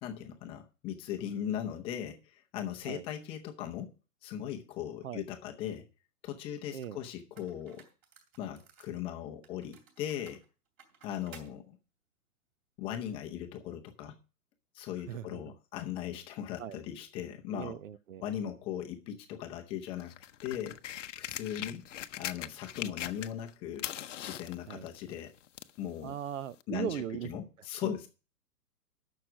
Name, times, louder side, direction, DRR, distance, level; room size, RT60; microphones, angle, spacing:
voice 1, 0.0-3.9 4.2-5.9 6.2-7.9 8.4-10.4 11.0-11.8 12.8-14.2 14.7-17.8 18.2-20.2 20.4-20.8 21.2-21.9 22.2-23.9 24.2-25.3 25.8-26.1 26.7-28.1, left 10 dB, 10° left, 0.6 m, -38 dB
sound 1, 6.7-6.8 7.4-9.0 9.4-11.5, right 6 dB, 30° right, 2.9 m, -57 dB
voice 2, 15.1-15.4 16.6-16.8 17.5-18.2 21.5-21.6 24.7-24.9 26.0-27.3 27.8-27.9, right 10 dB, 55° right, 0.7 m, -38 dB
sound 2, 20.0-23.5 23.8-25.8 26.6-26.7, left 11 dB, 50° left, 0.8 m, -41 dB
11.0 x 6.5 x 6.0 m
hypercardioid pair, 135°, 48 cm